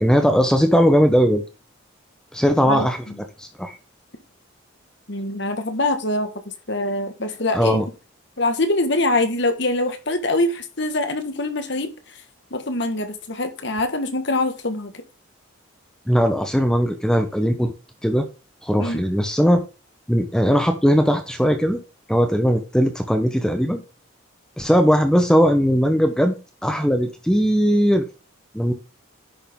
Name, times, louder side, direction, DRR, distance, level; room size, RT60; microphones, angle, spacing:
voice 1, 0.0-1.4 2.3-3.0 3.4-3.7 7.5-7.8 16.1-17.7 18.0-18.3 18.6-19.6 20.1-21.8 22.1-23.8 24.6-26.3 26.6-28.0 28.5-28.7, equal, 5° left, 1.0 m, -18 dB
voice 2, 2.7-3.2 5.1-6.3 6.7-7.8 8.4-12.2 12.5-15.0 18.8-19.0, left 2 dB, 55° left, 1.7 m, -24 dB
10.5 x 6.5 x 3.7 m
head